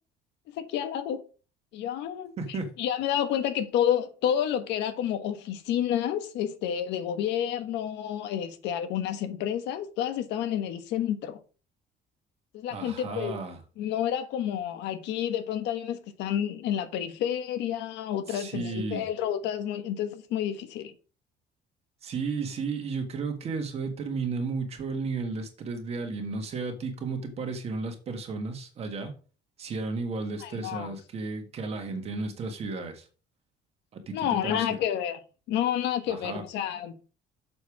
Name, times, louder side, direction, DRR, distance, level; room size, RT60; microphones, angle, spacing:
voice 1, 0.6-1.2 1.7-11.4 12.5-13.4 13.8-20.9 30.4-30.9 34.1-35.2 35.5-37.0, left 10 dB, 80° left, 1.3 m, -30 dB
voice 2, 2.4-2.7 12.7-13.6 18.3-19.1 22.0-29.1 29.6-33.1 33.9-34.8 36.1-36.4, right 4 dB, 35° right, 1.7 m, -33 dB
7.0 x 6.6 x 4.9 m
cardioid pair, 175°, 18 cm